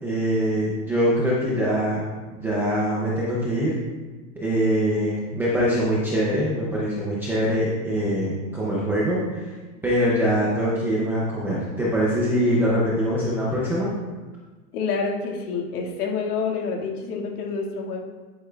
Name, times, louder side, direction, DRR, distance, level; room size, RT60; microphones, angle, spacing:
voice 1, 0.0-2.0 2.3-3.8 4.4-9.5 9.8-13.9, equal, 5° right, -7 dB, 0.4 m, -23 dB
voice 2, 14.7-18.0, left 5 dB, 70° left, 1 dB, 1.9 m, -28 dB
11.0 x 8.2 x 2.3 m, 1.3 s
supercardioid pair, 155°, 47 cm